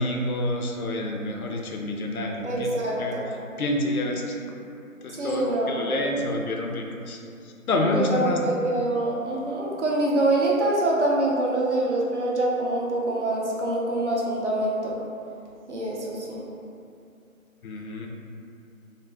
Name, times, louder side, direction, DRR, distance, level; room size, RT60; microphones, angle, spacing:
voice 1, 0.0-2.7 3.0-3.2 3.6-4.4 5.0-7.2 7.7-8.4 17.6-18.1, left 1 dB, 90° left, 1 dB, 0.5 m, -28 dB
voice 2, 2.4-3.3 5.1-5.9 7.9-14.9 15.7-16.4, right 2 dB, 55° right, -4 dB, 0.6 m, -25 dB
2.4 x 2.0 x 3.2 m, 2.5 s
figure-of-eight pair, 170°, 42 cm